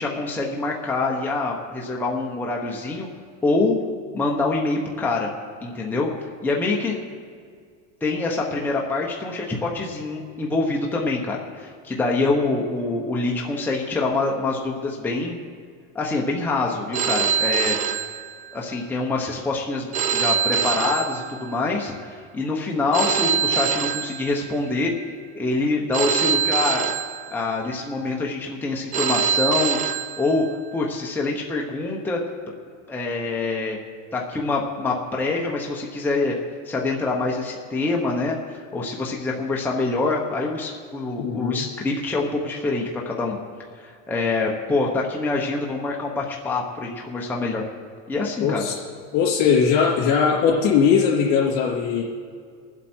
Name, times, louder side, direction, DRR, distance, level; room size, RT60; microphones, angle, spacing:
voice 1, 0.0-3.1 3.4-3.8 4.1-5.3 5.6-7.0 8.0-15.4 15.9-17.8 18.5-24.9 25.3-26.9 27.3-30.5 30.7-32.2 32.9-33.8 34.1-36.4 36.7-43.4 43.8-47.6 48.1-48.6, left 3 dB, 5° left, -2 dB, 0.9 m, -25 dB
Telephone, 16.9-18.8 19.9-21.8 22.9-24.8 25.9-27.8 28.9-30.8, right 8 dB, 25° right, 0.4 m, -25 dB
voice 2, 41.2-41.7 48.4-48.8 49.1-52.0, left 6 dB, 60° left, -8 dB, 3.2 m, -20 dB
24.0 x 8.1 x 4.4 m, 2.1 s
cardioid pair, 165°, 39 cm